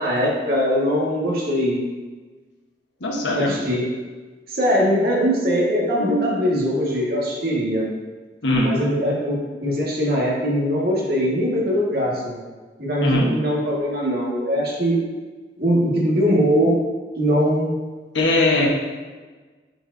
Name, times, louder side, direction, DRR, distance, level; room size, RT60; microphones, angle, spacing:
voice 1, 0.0-1.8 3.3-3.8 4.5-7.9 8.6-12.4 12.8-15.0 15.6-16.8 17.2-17.8, equal, 60° right, -4 dB, 1.8 m, -21 dB
voice 2, 3.0-3.6 6.0-6.2 8.4-8.7 13.0-13.3 18.1-18.7, left 1 dB, 85° left, -1 dB, 1.3 m, -20 dB
9.6 x 4.6 x 2.7 m, 1.4 s
head